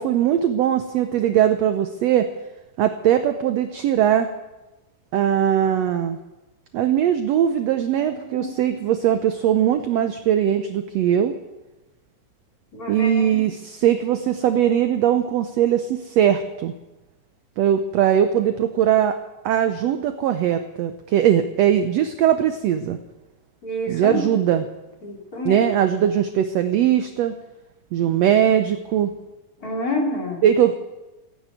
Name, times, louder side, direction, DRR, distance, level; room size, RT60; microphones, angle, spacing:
voice 1, 0.0-2.3 2.8-4.3 5.1-6.2 6.7-11.4 12.9-16.7 17.6-19.2 19.4-23.0 23.9-24.6 25.4-27.3 27.9-29.1 30.4-30.8, right 10 dB, 75° right, 8 dB, 1.5 m, -20 dB
voice 2, 8.0-8.6 12.7-13.4 18.0-18.1 23.6-24.5 25.0-25.7 29.6-30.4, left 1 dB, 25° left, -2 dB, 3.3 m, -29 dB
16.0 x 9.4 x 9.0 m, 1.1 s
omnidirectional pair, 3.8 m